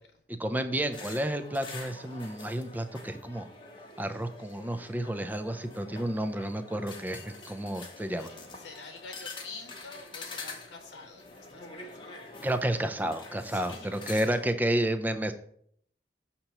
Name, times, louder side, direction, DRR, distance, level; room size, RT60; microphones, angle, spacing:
voice 1, 0.3-3.5 4.0-8.3 12.4-15.3, right 1 dB, 10° right, 8 dB, 0.4 m, -31 dB
sound 1, 0.9-14.5, left 3 dB, 30° left, 0.8 m, -46 dB
voice 2, 8.2-12.1 13.4-14.3, left 4 dB, 85° left, 4 dB, 0.8 m, -47 dB
6.6 x 2.9 x 5.8 m, 0.66 s
head